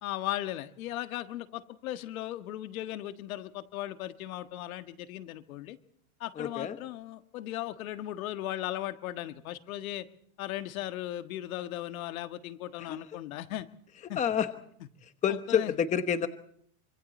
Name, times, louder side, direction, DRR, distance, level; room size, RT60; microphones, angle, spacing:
voice 1, 0.0-5.8 6.2-10.1 10.4-13.7 14.1-14.2 15.3-15.7, left 14 dB, 70° left, 9 dB, 1.6 m, -37 dB
voice 2, 6.4-6.8 12.8-13.0 14.1-14.5 15.2-16.3, left 8 dB, 15° left, 10 dB, 1.1 m, -28 dB
25.5 x 25.0 x 4.3 m, 0.65 s
supercardioid pair, 150°, 43 cm